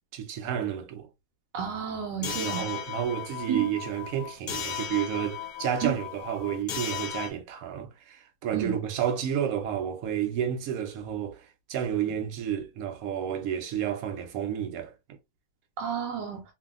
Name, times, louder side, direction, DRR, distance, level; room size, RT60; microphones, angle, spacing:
voice 1, 0.1-1.1 2.2-14.9, right 9 dB, 65° right, 0.9 m, -31 dB
voice 2, 1.5-2.6 3.5-3.7 5.8-5.9 8.5-8.7 15.8-16.4, right 8 dB, 80° right, 1.2 m, -31 dB
sound 1, 2.2-7.3, left 8 dB, 70° left, 0.8 m, -36 dB
2.6 x 2.6 x 2.3 m
omnidirectional pair, 1.9 m